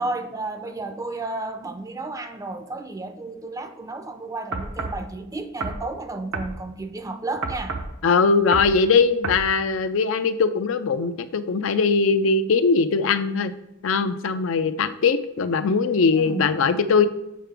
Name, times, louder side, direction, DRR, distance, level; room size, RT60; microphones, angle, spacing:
voice 1, 0.0-7.8 16.1-16.7, right 2 dB, 15° right, 0.5 m, -32 dB
sound 1, 4.5-5.0 5.6-5.8 6.3-6.5 7.4-7.9 8.5-8.8 9.2-9.5, right 3 dB, 75° right, 0.8 m, -30 dB
voice 2, 8.0-13.5 13.8-17.1, left 4 dB, 70° left, 0.4 m, -20 dB
7.4 x 5.7 x 3.4 m
head